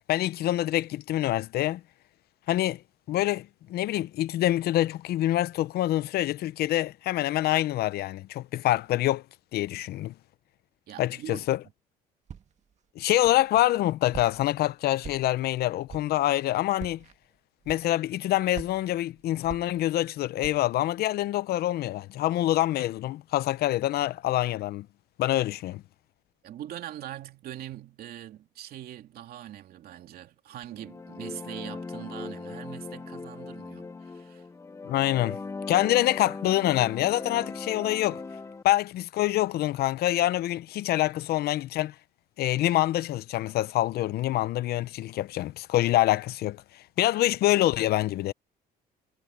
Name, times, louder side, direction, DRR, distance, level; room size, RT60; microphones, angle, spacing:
voice 1, 0.1-1.8 2.5-2.8 3.1-9.2 9.5-10.1 11.0-11.6 13.0-17.0 17.7-24.9 25.2-25.8 34.9-35.4 35.7-38.2 38.6-41.9 42.4-48.3, left 15 dB, 70° left, 0.7 m, -26 dB
voice 2, 10.9-11.5 26.4-34.5, right 12 dB, 65° right, 2.7 m, -42 dB
Walk footsteps, 12.3-12.7 13.2-13.8 14.1-14.6 15.0-15.5 15.9-16.2 16.7-17.2 17.6-18.2 18.5-20.1 20.4-20.8, right 7 dB, 40° right, 2.0 m, -44 dB
sound 1, 30.7-38.6, left 4 dB, 15° left, 0.6 m, -39 dB
cardioid pair, 110°, 17 cm